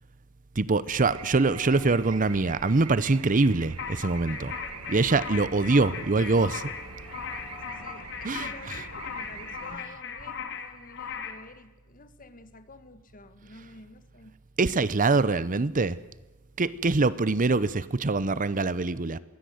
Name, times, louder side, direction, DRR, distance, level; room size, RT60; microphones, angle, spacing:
voice 1, 0.6-4.5 4.9-6.7 8.2-8.5 14.6-16.0 16.6-19.2, right 3 dB, 35° right, 17 dB, 0.7 m, -24 dB
sound 1, 0.9-9.8, right 5 dB, 75° right, 1.3 m, -44 dB
sound 2, 1.1-8.0, left 2 dB, 5° left, 2.6 m, -52 dB
sound 3, 3.8-11.5, left 7 dB, 55° left, 2.4 m, -38 dB
voice 2, 7.6-14.3, left 3 dB, 40° left, 11 dB, 1.8 m, -49 dB
22.5 x 17.0 x 9.4 m, 1.1 s
head